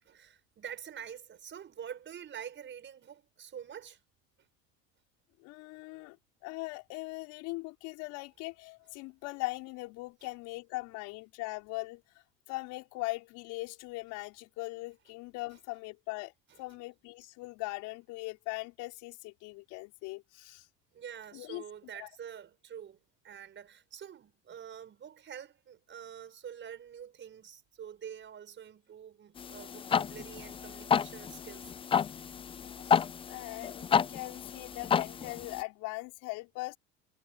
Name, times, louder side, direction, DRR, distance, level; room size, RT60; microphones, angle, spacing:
voice 1, 0.0-4.0 4.4-4.5 5.9-6.0 10.2-10.3 16.7-16.8 20.9-23.0 23.2-31.7, right 8 dB, 35° right, 6.0 m, -46 dB
voice 2, 5.4-6.2 6.4-12.0 12.5-16.3 16.6-20.7 21.3-21.6 22.0-22.1 32.6-36.8, left 23 dB, 65° left, 4.7 m, -40 dB
sound 1, 29.4-35.6, left 7 dB, 15° left, 0.4 m, -31 dB
supercardioid pair, 95°, 32 cm